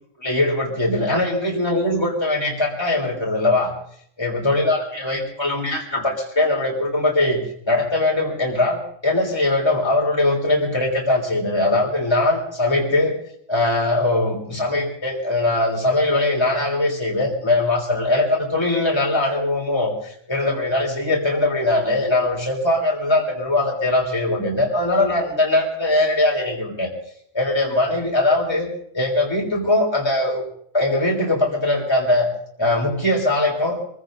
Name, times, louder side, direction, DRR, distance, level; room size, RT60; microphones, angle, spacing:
voice 1, 0.2-3.7 4.2-13.1 13.5-26.9 27.3-28.7 28.9-30.4 30.7-32.3 32.6-33.8, left 2 dB, 20° left, -1 dB, 3.5 m, -21 dB
26.5 x 16.0 x 2.6 m, 0.66 s
omnidirectional pair, 1.3 m